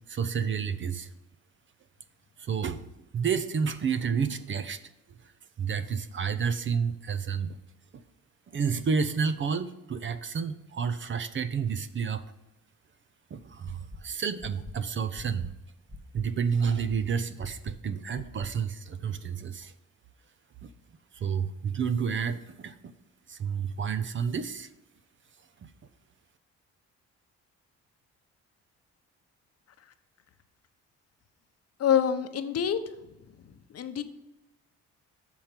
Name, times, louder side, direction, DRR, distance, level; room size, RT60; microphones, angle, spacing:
voice 1, 0.1-1.1 2.4-2.9 3.1-4.8 5.6-7.6 7.9-8.0 8.5-12.2 13.3-15.5 16.1-19.7 20.6-20.7 21.1-22.9 23.3-24.7 25.6-25.7, right 6 dB, 40° right, 13 dB, 0.6 m, -30 dB
sound 1, 13.6-14.0 14.4-14.7 15.1-15.5 15.9-16.2 16.6-17.0 17.4-17.7 18.1-18.5, left 2 dB, 5° right, 2.0 m, -43 dB
voice 2, 31.8-32.8 33.4-34.0, left 8 dB, 55° left, 10 dB, 0.8 m, -27 dB
7.2 x 4.5 x 6.7 m, 0.96 s
cardioid pair, 90°, 30 cm